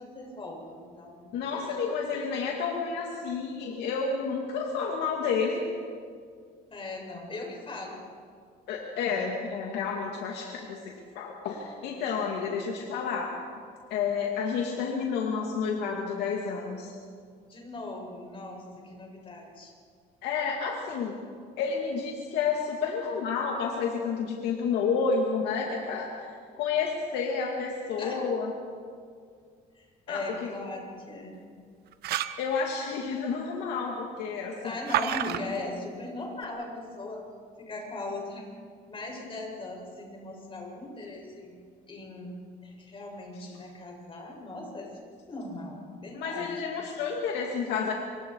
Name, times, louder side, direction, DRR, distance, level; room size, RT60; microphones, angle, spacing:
voice 1, 0.0-1.9 2.1-2.2 6.7-8.0 17.5-19.7 28.0-28.2 29.7-31.4 34.6-37.2 37.6-38.5 38.9-41.6 41.9-42.4 42.6-44.9 45.3-46.6, left 2 dB, 30° left, 0 dB, 7.3 m, -39 dB
voice 2, 1.3-5.6 8.7-13.3 13.9-16.9 20.2-21.1 21.6-28.5 30.1-30.2 32.4-34.7 43.4-43.6 46.1-47.9, left 5 dB, 85° left, 0 dB, 2.5 m, -30 dB
sound 1, 31.9-32.5 34.9-35.4, right 12 dB, 70° right, 0.9 m, -29 dB
27.5 x 25.0 x 4.8 m, 2.1 s
cardioid pair, 110°, 17 cm